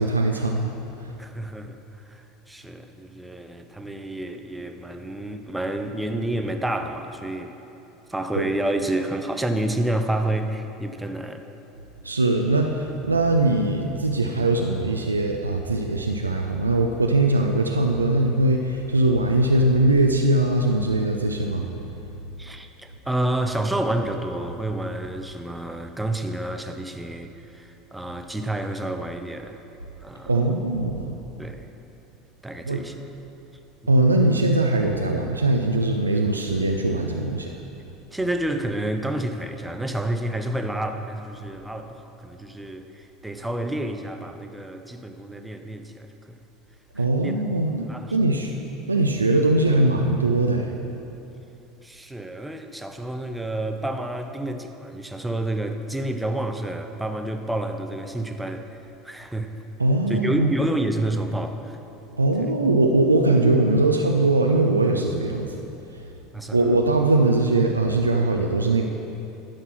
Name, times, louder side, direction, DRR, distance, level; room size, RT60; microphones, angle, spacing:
voice 1, 0.0-1.1 8.4-8.5 12.0-21.7 30.3-31.2 32.6-32.8 33.9-37.5 47.0-48.5 48.9-50.7 59.8-60.5 62.2-65.6 66.5-68.8, right 2 dB, 85° right, 2 dB, 0.4 m, -21 dB
voice 2, 1.2-1.8 2.1-7.5 8.1-11.5 22.4-29.6 30.0-30.4 31.4-31.7 32.4-33.0 38.1-46.4 47.0-47.4 47.8-48.2 51.8-58.8 59.0-59.6 60.1-61.8 66.3-66.8, right 1 dB, 5° right, 6 dB, 0.7 m, -29 dB
11.5 x 5.9 x 5.9 m, 2.9 s
figure-of-eight pair, 75°, 0 cm